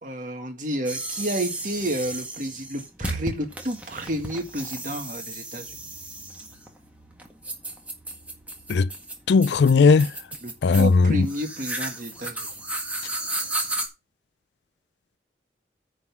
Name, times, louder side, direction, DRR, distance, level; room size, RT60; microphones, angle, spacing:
voice 1, 0.0-5.8 10.4-12.5, right 1 dB, 45° right, 2.0 m, -31 dB
sound 1, 0.8-13.9, right 2 dB, 10° right, 1.7 m, -34 dB
voice 2, 9.3-10.1 10.6-11.3, left 4 dB, 70° left, 0.4 m, -17 dB
9.5 x 4.0 x 7.0 m
head